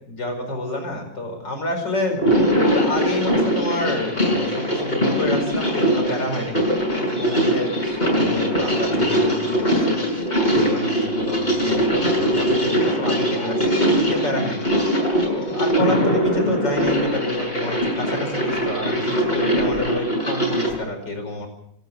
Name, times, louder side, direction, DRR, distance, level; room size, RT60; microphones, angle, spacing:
voice 1, 0.1-2.2 2.7-6.7 6.9-14.7 15.2-21.5, left 1 dB, 75° left, 4 dB, 5.7 m, -29 dB
sound 1, 2.1-20.7, equal, 25° left, 6.9 m, -21 dB
28.0 x 11.5 x 8.0 m, 0.74 s
omnidirectional pair, 2.0 m